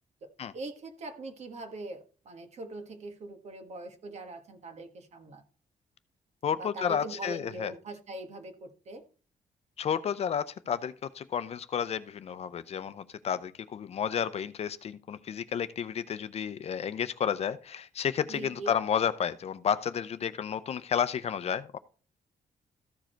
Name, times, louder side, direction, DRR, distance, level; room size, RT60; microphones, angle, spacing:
voice 1, 0.2-5.4 6.6-9.1 18.3-18.7, right 2 dB, 55° right, 1.6 m, -42 dB
voice 2, 6.4-7.7 9.8-21.8, left 8 dB, 50° left, 0.6 m, -31 dB
14.0 x 4.9 x 4.5 m
cardioid pair, 145°, 14 cm